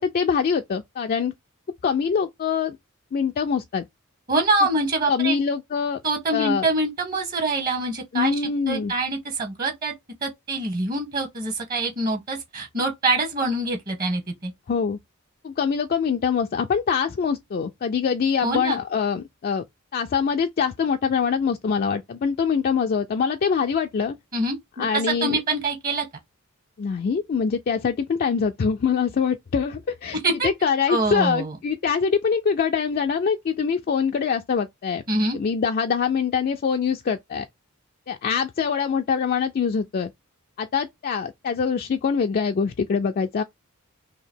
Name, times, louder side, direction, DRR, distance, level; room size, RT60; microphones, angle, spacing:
voice 1, 0.0-1.3 1.8-2.8 3.1-3.9 5.1-6.0 6.3-6.7 8.1-8.9 14.7-15.0 15.4-19.6 19.9-24.2 24.8-25.4 26.8-35.0 35.3-37.5 38.1-40.1 40.6-43.4, left 6 dB, 45° left, 0.3 m, -24 dB
voice 2, 4.3-5.4 6.0-9.9 10.2-14.5 18.4-18.8 24.3-26.1 30.2-30.5 30.9-31.6 35.1-35.4, right 2 dB, 40° right, 1.0 m, -25 dB
2.8 x 2.8 x 4.2 m
head